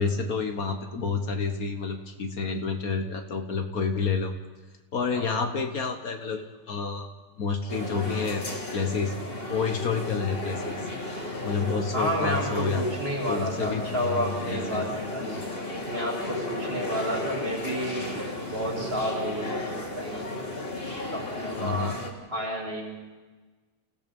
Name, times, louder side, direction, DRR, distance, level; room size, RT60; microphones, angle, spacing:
voice 1, 0.0-4.3 4.9-7.1 7.4-8.4 8.7-9.2 9.5-10.8 11.4-12.8 13.3-14.9 15.4-15.6 21.6-22.0, left 5 dB, 60° left, 6 dB, 1.8 m, -29 dB
sound 1, 7.7-22.1, left 2 dB, 35° left, 2.9 m, -34 dB
voice 2, 11.9-15.4 15.9-18.2 18.5-20.3 21.1-22.0 22.3-23.0, equal, 35° right, -2 dB, 6.4 m, -31 dB
29.0 x 16.5 x 5.4 m, 1.3 s
omnidirectional pair, 1.7 m